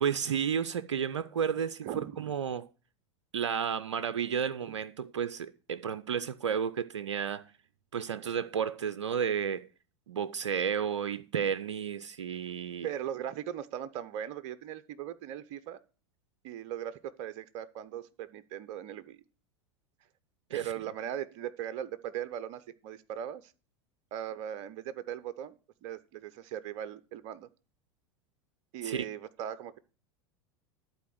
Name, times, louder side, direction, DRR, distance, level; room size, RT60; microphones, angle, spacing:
voice 1, 0.0-2.7 3.3-7.5 7.9-9.7 10.1-12.9 20.5-20.6 28.8-29.1, right 7 dB, 80° right, 0.5 m, -32 dB
voice 2, 1.8-2.3 4.7-4.8 12.8-15.8 16.4-19.2 20.5-23.5 24.1-25.5 25.8-27.5 28.7-29.8, right 10 dB, 50° right, 0.7 m, -39 dB
11.5 x 4.3 x 7.6 m
hypercardioid pair, 85°, 15 cm